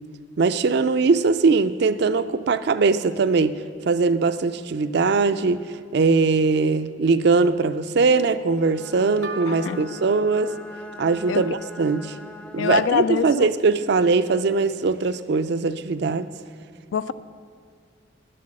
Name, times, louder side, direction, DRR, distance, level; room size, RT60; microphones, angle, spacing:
voice 1, 0.4-3.6 3.9-5.6 5.9-10.5 11.0-12.2 12.5-16.3, right 4 dB, 60° right, 13 dB, 0.4 m, -21 dB
Bowed string instrument, 8.6-13.0, left 1 dB, 5° left, 0.3 m, -42 dB
sound 1, 9.2-12.8, right 3 dB, 90° right, 1.1 m, -42 dB
voice 2, 9.5-9.8 11.3-11.4 12.6-13.5 16.9-17.1, left 7 dB, 80° left, 15 dB, 0.4 m, -24 dB
11.0 x 7.7 x 7.6 m, 2.1 s
head